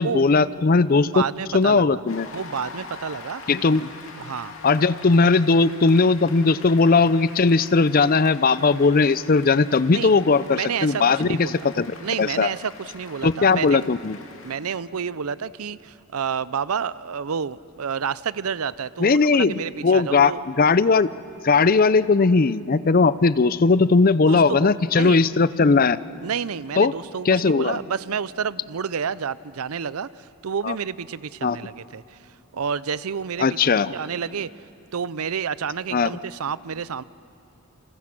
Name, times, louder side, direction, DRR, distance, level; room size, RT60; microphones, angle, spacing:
voice 1, 0.0-1.1 1.5-2.3 3.5-3.9 4.6-11.9 12.2-12.5 13.2-14.2 19.0-21.1 21.4-26.0 26.8-26.9 27.3-27.8 30.6-30.7 31.4-31.6 33.4-33.9 35.9-36.1, left 4 dB, 40° left, 16 dB, 0.5 m, -18 dB
voice 2, 0.9-2.0 2.3-3.4 4.2-4.8 9.9-10.1 10.5-11.7 12.0-13.9 14.4-20.4 24.3-25.2 26.2-34.5 34.9-37.0, right 6 dB, 90° right, 18 dB, 0.6 m, -30 dB
Cheering / Applause, 2.1-14.6, left 4 dB, 70° left, 2.6 m, -43 dB
29.5 x 28.0 x 6.0 m, 2.6 s
head